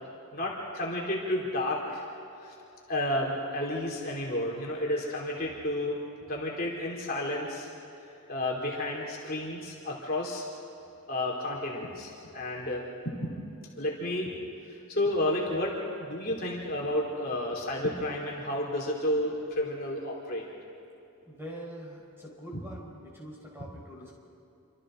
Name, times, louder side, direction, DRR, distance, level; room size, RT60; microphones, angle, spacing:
voice 1, 0.3-2.1 2.4-2.5 2.9-6.0 6.3-7.7 8.0-10.4 11.1-13.3 13.8-14.3 14.7-20.5, left 1 dB, 45° left, -3 dB, 3.1 m, -31 dB
voice 2, 21.3-24.1, equal, 10° right, -3 dB, 4.7 m, -44 dB
28.5 x 25.5 x 3.8 m, 2.7 s
head